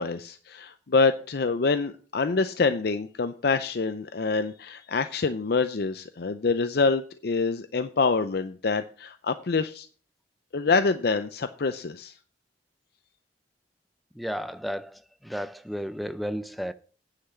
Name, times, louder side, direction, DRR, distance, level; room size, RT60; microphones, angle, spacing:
voice 1, 0.0-9.9 10.5-12.2, left 4 dB, 60° left, 0.5 m, -26 dB
voice 2, 14.1-16.7, equal, ahead, 0.5 m, -33 dB
9.8 x 5.8 x 7.2 m
head